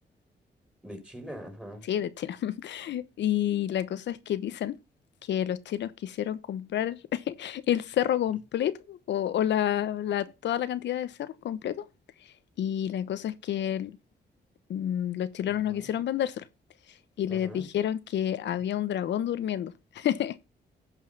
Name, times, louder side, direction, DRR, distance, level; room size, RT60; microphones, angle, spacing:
voice 1, 0.8-1.9 15.4-15.9 17.3-17.7, equal, 5° right, 4.2 m, -43 dB
voice 2, 1.8-4.8 5.3-11.8 12.6-14.0 14.7-16.4 17.2-20.4, left 10 dB, 85° left, 1.0 m, -29 dB
16.0 x 5.6 x 5.5 m
cardioid pair, 105°, 18 cm